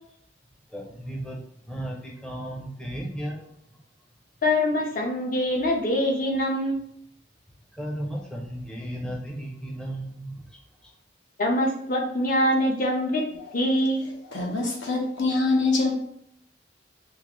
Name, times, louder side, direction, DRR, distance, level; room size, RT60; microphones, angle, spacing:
voice 1, 0.7-3.6 7.7-10.9, right 1 dB, 5° left, -2 dB, 0.5 m, -35 dB
voice 2, 4.4-6.8 11.4-13.2 13.5-14.0, left 1 dB, 45° left, 0 dB, 0.8 m, -24 dB
voice 3, 14.3-15.9, left 3 dB, 85° left, -1 dB, 0.9 m, -24 dB
3.7 x 2.4 x 3.0 m, 0.70 s
head